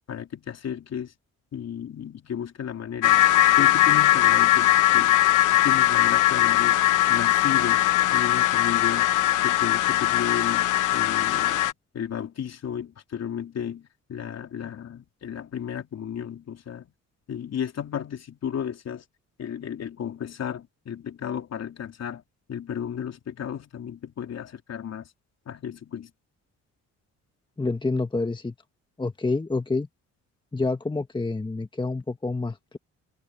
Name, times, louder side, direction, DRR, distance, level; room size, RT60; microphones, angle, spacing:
voice 1, 0.1-1.1 1.5-3.2 3.6-5.2 5.5-6.8 7.1-7.8 8.1-9.1 9.4-16.9 17.3-19.0 19.4-22.2 22.5-25.1 25.5-26.1, left 8 dB, 60° left, 3.7 m, -33 dB
sound 1, 3.0-11.7, left 15 dB, 85° left, 1.1 m, -20 dB
voice 2, 27.6-28.5 29.0-29.9 30.5-32.8, left 3 dB, 15° left, 1.6 m, -28 dB
cardioid pair, 90°, 30 cm